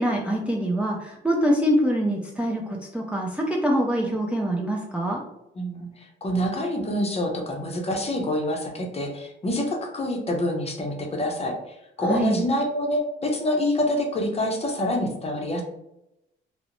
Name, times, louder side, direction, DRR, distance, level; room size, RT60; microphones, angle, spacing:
voice 1, 0.0-5.2 12.0-12.4, equal, 5° right, -1 dB, 0.4 m, -24 dB
voice 2, 5.6-15.6, left 1 dB, 30° left, 1 dB, 0.7 m, -26 dB
2.4 x 2.0 x 2.9 m, 0.84 s
cardioid pair, 90°, 20 cm